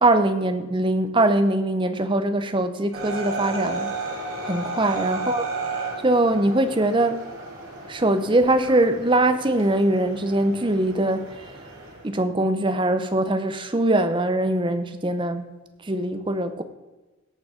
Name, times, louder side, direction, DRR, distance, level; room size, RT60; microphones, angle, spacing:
voice 1, 0.0-4.0 4.4-5.4 6.0-7.3 7.9-11.4 12.0-15.5 15.8-16.6, right 1 dB, 25° right, 10 dB, 0.6 m, -22 dB
sound 1, 2.9-12.1, right 3 dB, 80° right, 3.3 m, -33 dB
17.0 x 6.1 x 4.9 m, 1.2 s
head